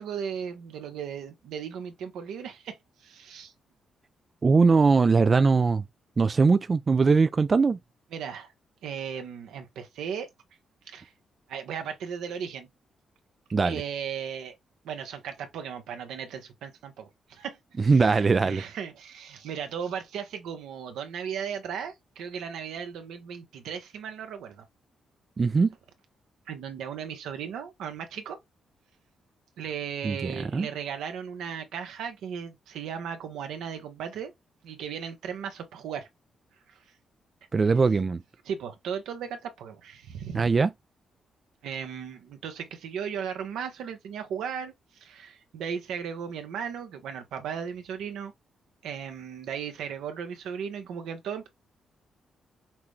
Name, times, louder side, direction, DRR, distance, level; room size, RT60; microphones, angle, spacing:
voice 1, 0.0-3.5 8.1-8.5 8.8-10.3 10.9-11.1 11.5-12.7 13.6-14.6 14.8-24.6 26.5-28.4 29.6-34.3 34.6-36.1 36.7-36.8 38.4-40.4 41.6-44.7 45.0-48.3 48.8-51.5, right 7 dB, 85° right, 1.0 m, -36 dB
voice 2, 4.4-5.8 6.2-7.8 13.5-13.8 17.9-18.6 25.4-25.7 30.0-30.7 37.5-38.2 40.3-40.7, right 4 dB, 40° right, 0.4 m, -21 dB
5.8 x 2.3 x 3.3 m
cardioid pair, 70°, 0 cm